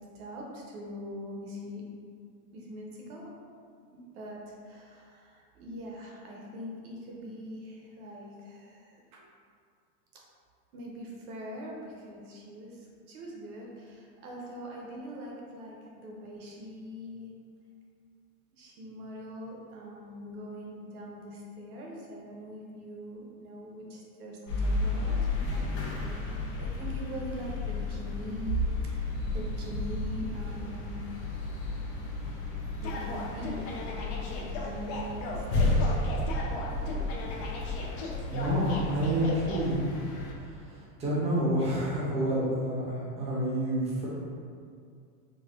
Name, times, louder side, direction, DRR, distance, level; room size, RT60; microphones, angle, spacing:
voice 1, 0.0-1.8 2.5-3.3 3.9-9.3 10.7-17.3 18.5-25.7 26.0-31.1 32.8-36.0, right 1 dB, 65° right, -3 dB, 0.9 m, -41 dB
sound 1, 24.5-40.3, left 2 dB, 85° left, 0.9 m, -33 dB
sound 2, 32.8-39.6, left 3 dB, 40° left, 0.5 m, -38 dB
voice 2, 38.3-39.8 40.4-44.1, right 1 dB, 15° right, -8 dB, 0.7 m, -29 dB
4.0 x 2.3 x 2.4 m, 2.2 s
supercardioid pair, 135°, 48 cm